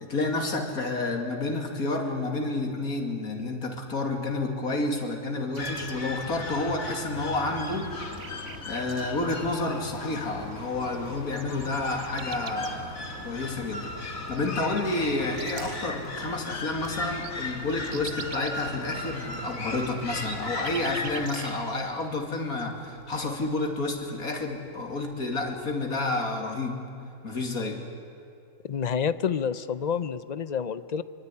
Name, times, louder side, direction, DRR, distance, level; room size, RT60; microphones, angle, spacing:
voice 1, 0.0-7.9 8.7-26.8 27.2-27.8, left 2 dB, 90° left, 3 dB, 3.1 m, -30 dB
sound 1, 5.5-7.2 7.6-9.0 10.2-10.3 10.5-15.9 16.3-16.4 16.7-21.7 22.0-22.7, right 7 dB, 70° right, 1.5 m, -45 dB
sound 2, 5.6-21.3, left 2 dB, 70° left, 2.5 m, -37 dB
Fire, 8.1-26.1, equal, 15° left, 7.2 m, -53 dB
voice 2, 28.6-31.0, left 7 dB, 40° left, 14 dB, 0.6 m, -28 dB
24.5 x 23.5 x 9.9 m, 2.6 s
omnidirectional pair, 1.5 m